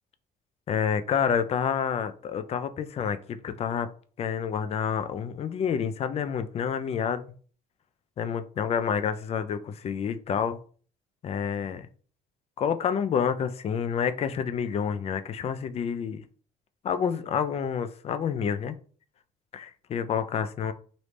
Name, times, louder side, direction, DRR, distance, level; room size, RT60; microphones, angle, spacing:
voice 1, 0.7-3.9 4.2-7.2 8.2-10.6 11.2-11.9 12.6-16.2 16.8-18.8 19.5-20.7, left 7 dB, 40° left, 11 dB, 0.4 m, -28 dB
3.1 x 2.6 x 3.2 m, 0.43 s
cardioid pair, 110°, 17 cm